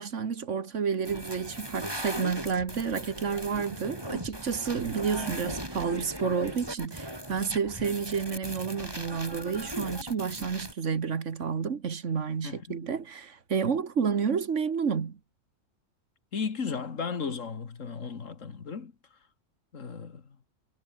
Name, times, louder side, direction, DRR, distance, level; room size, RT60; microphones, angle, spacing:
voice 1, 0.0-15.2, right 6 dB, 70° right, 1.8 m, -30 dB
sound 1, 1.0-10.7, right 1 dB, 20° right, 7.0 m, -38 dB
voice 2, 12.4-12.8 16.3-18.9 19.7-20.2, left 5 dB, 90° left, 2.2 m, -35 dB
omnidirectional pair, 1.3 m